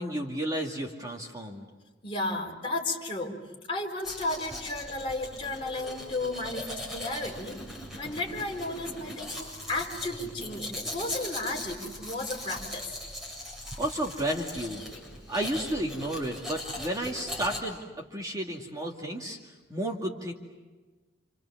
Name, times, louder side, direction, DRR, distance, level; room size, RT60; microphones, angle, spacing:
voice 1, 0.0-1.7 13.8-14.9 15.3-20.3, right 1 dB, 20° right, 0 dB, 2.3 m, -32 dB
voice 2, 2.0-3.4 3.7-7.6 8.0-13.0, left 2 dB, 30° left, 0 dB, 4.4 m, -33 dB
Domestic sounds home sounds, 4.0-17.6, left 1 dB, ahead, 7.6 m, -40 dB
29.0 x 28.5 x 7.3 m, 1.3 s
head